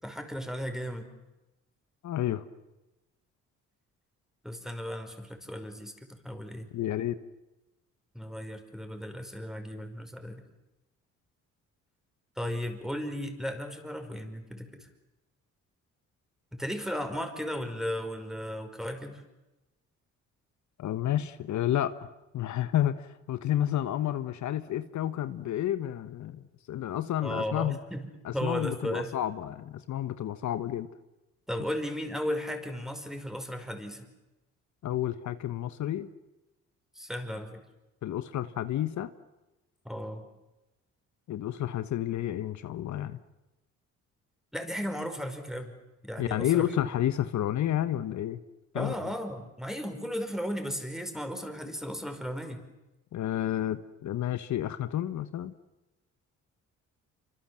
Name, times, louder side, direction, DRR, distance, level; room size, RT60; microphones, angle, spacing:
voice 1, 0.0-1.1 4.4-6.7 8.1-10.4 12.4-14.9 16.5-19.2 27.2-28.0 28.3-29.1 31.5-34.1 36.9-37.6 39.8-40.3 44.5-45.7 46.0-46.7 48.7-52.6, equal, ahead, 6 dB, 5.2 m, -35 dB
voice 2, 2.0-2.4 6.7-7.2 20.8-21.9 22.3-27.8 28.2-30.9 34.8-36.1 38.0-39.1 41.3-43.2 46.2-48.4 48.7-49.0 53.1-55.5, left 12 dB, 70° left, 12 dB, 1.3 m, -30 dB
27.5 x 25.5 x 7.7 m, 1.0 s
cardioid pair, 90°, 30 cm